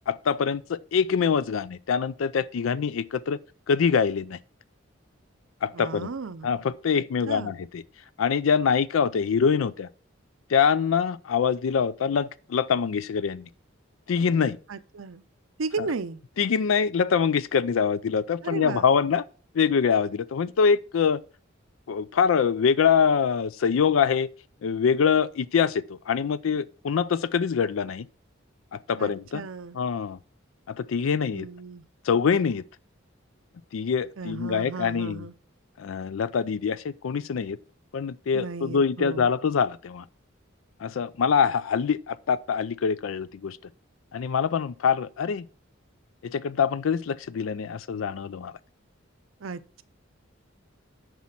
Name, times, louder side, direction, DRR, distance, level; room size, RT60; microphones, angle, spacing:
voice 1, 0.1-3.4 3.7-4.4 5.6-6.1 6.4-7.8 8.2-9.9 10.5-13.5 14.1-14.6 16.4-19.2 19.5-21.2 21.9-24.3 24.6-28.1 28.7-29.4 29.7-30.2 30.7-31.5 32.0-32.6 33.7-35.3 35.8-37.6 37.9-40.0 40.8-43.6 44.1-45.4 46.2-48.5, left 6 dB, 85° left, 0.4 m, -24 dB
voice 2, 5.7-6.5 6.9-7.5 14.7-15.2 15.6-16.2 18.4-18.8 29.0-29.8 31.3-31.8 34.2-35.3 38.3-39.3 49.4-49.8, right 4 dB, 85° right, 0.6 m, -35 dB
10.5 x 4.2 x 5.8 m
head